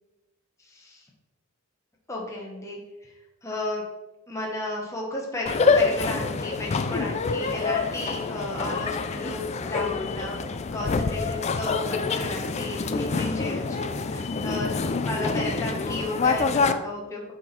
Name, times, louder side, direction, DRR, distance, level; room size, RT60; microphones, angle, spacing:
voice 1, 0.7-1.0 2.1-3.1 3.4-3.8 4.3-14.8 15.1-17.3, left 1 dB, 15° left, -2 dB, 1.1 m, -34 dB
sound 1, 5.5-16.7, left 4 dB, 30° left, 0.4 m, -26 dB
8.2 x 4.3 x 4.2 m, 1.1 s
head